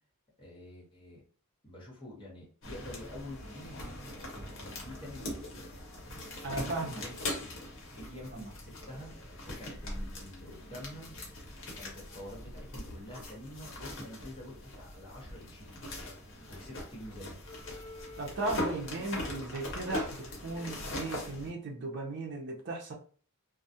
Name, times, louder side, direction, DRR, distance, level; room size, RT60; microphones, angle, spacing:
voice 1, 0.4-1.2 1.6-3.8 4.5-5.8 6.4-7.4 7.9-9.1 9.4-11.2 11.6-15.8 16.5-17.4, left 1 dB, 25° left, -5 dB, 1.1 m, -47 dB
sound 1, 2.6-21.5, left 1 dB, 60° left, 0.9 m, -41 dB
voice 2, 6.4-7.0 8.3-8.5 18.2-22.9, right 2 dB, 50° right, 0 dB, 0.5 m, -36 dB
2.3 x 2.0 x 2.7 m, 0.43 s
head